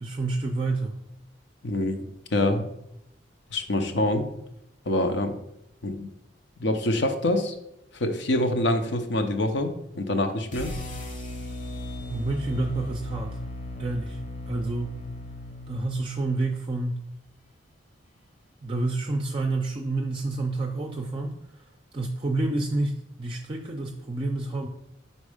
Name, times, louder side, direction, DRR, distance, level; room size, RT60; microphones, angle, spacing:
voice 1, 0.0-0.9 12.1-13.4 13.8-14.2 14.5-14.9 15.7-17.0 18.6-21.6 21.9-24.7, right 2 dB, 25° right, 2 dB, 0.4 m, -29 dB
voice 2, 1.6-2.0 2.3-2.7 3.5-4.3 4.9-5.4 5.8-6.1 6.6-7.5 7.9-10.7, left 1 dB, 65° left, 6 dB, 0.8 m, -25 dB
sound 1, 10.5-16.6, left 1 dB, 45° left, 1.0 m, -37 dB
5.2 x 4.2 x 4.9 m, 0.79 s
head